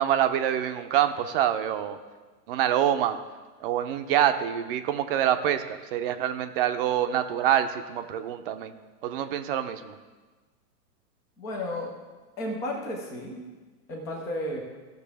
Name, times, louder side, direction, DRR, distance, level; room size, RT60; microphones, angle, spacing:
voice 1, 0.0-2.0 2.5-3.2 3.6-8.7 9.0-9.9, right 10 dB, 35° right, 9 dB, 0.6 m, -26 dB
voice 2, 11.4-11.9 12.4-13.5 13.9-14.6, left 1 dB, 5° left, 0 dB, 0.3 m, -33 dB
15.5 x 6.6 x 3.4 m, 1.3 s
hypercardioid pair, 130°, 49 cm